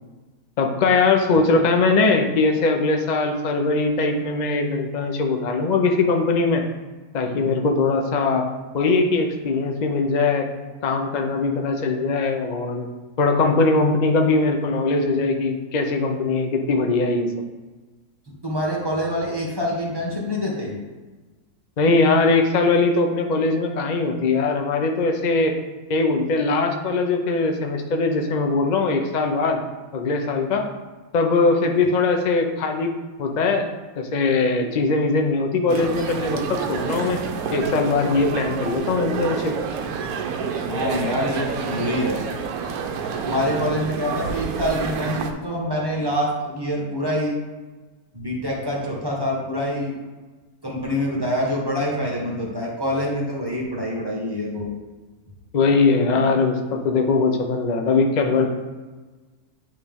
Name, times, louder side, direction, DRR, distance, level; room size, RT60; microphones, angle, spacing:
voice 1, 0.6-6.6 7.1-8.5 8.7-10.5 10.8-12.9 13.2-17.3 21.8-25.6 25.9-29.6 29.9-30.6 31.1-32.9 33.2-33.7 34.0-37.2 37.5-39.5 55.5-58.5, left 3 dB, 60° left, 3 dB, 0.4 m, -21 dB
voice 2, 18.4-20.8 40.6-42.2 43.2-47.4 48.1-50.0 50.6-54.7, equal, 15° right, -3 dB, 1.2 m, -25 dB
sound 1, 35.7-45.3, right 6 dB, 75° right, 1.1 m, -28 dB
9.5 x 3.3 x 3.5 m, 1.3 s
omnidirectional pair, 1.6 m